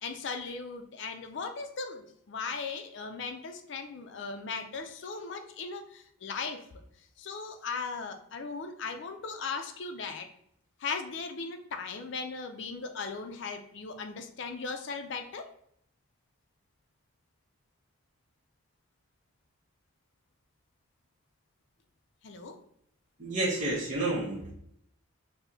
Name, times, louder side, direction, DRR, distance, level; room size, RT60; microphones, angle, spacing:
voice 1, 0.0-6.7 7.2-10.3 10.8-15.4 22.2-22.6, left 4 dB, 60° left, 5 dB, 0.4 m, -38 dB
voice 2, 23.2-24.5, right 2 dB, 35° right, -6 dB, 0.7 m, -30 dB
4.5 x 2.1 x 2.6 m, 0.72 s
head